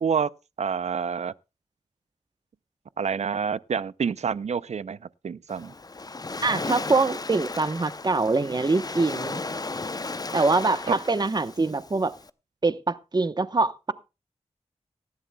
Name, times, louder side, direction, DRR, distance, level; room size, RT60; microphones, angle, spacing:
voice 1, 0.6-1.3 3.0-5.0 5.2-5.7 10.9-11.0, right 6 dB, 75° right, 0.5 m, -27 dB
Waves surf, 5.5-12.3, left 3 dB, 35° left, 0.7 m, -35 dB
voice 2, 6.4-9.4 10.3-12.1 12.6-13.9, right 3 dB, 35° right, 1.0 m, -24 dB
19.0 x 13.5 x 2.3 m
wide cardioid pair, 75°, 12 cm